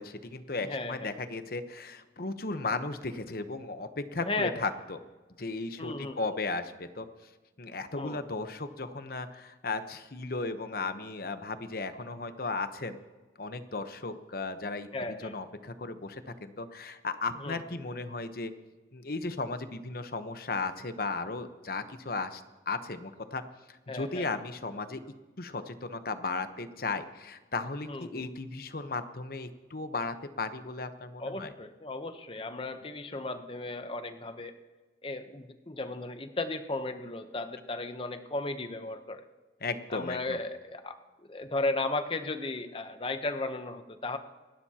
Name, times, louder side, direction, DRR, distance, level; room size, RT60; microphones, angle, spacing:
voice 1, 0.0-5.0 5.4-7.1 7.6-13.0 13.4-18.5 18.9-23.4 23.7-25.0 25.4-31.5 39.6-40.4, left 3 dB, 55° left, 9 dB, 1.0 m, -35 dB
voice 2, 0.6-1.1 4.2-4.6 5.8-6.2 8.0-8.2 14.9-15.4 17.4-17.6 23.9-24.3 27.9-28.3 31.2-34.6 35.0-39.2 39.9-41.0 41.3-44.2, left 2 dB, 30° left, 8 dB, 0.9 m, -35 dB
26.5 x 12.0 x 2.9 m, 1.3 s
head